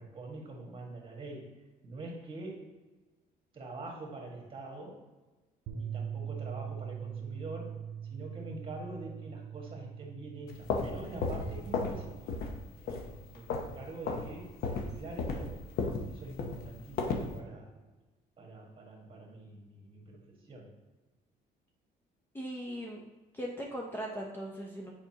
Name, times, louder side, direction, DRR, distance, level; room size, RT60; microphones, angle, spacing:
voice 1, 0.0-1.5 1.8-2.7 3.5-5.0 5.7-7.8 8.1-12.4 12.8-15.6 16.1-17.7 18.4-20.7, right 2 dB, 30° right, 0 dB, 1.7 m, -45 dB
Bass guitar, 5.7-11.9, right 8 dB, 65° right, 0.7 m, -42 dB
sound 1, 10.5-12.0 12.3-12.6 12.9-13.8 14.0-14.3 14.6-17.3, left 4 dB, 65° left, 0.8 m, -33 dB
voice 2, 22.3-23.0 23.3-24.9, equal, 10° left, -2 dB, 0.7 m, -39 dB
6.9 x 5.1 x 2.9 m, 1.2 s
cardioid pair, 110°, 17 cm